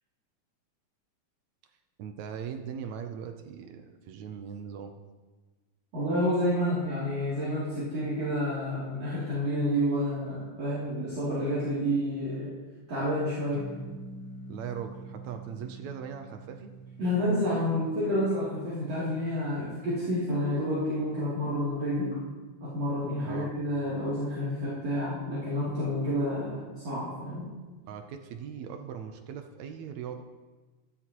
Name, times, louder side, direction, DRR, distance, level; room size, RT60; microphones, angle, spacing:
voice 1, 2.0-4.9 14.5-16.7 23.2-23.6 27.9-30.2, right 7 dB, 75° right, 6 dB, 1.9 m, -40 dB
voice 2, 5.9-12.5 12.9-13.6 17.0-22.2 22.6-27.5, equal, 55° right, -11 dB, 4.1 m, -29 dB
sound 1, 13.5-20.4, right 2 dB, 55° left, 2.7 m, -46 dB
13.5 x 12.5 x 3.0 m, 1.3 s
omnidirectional pair, 3.4 m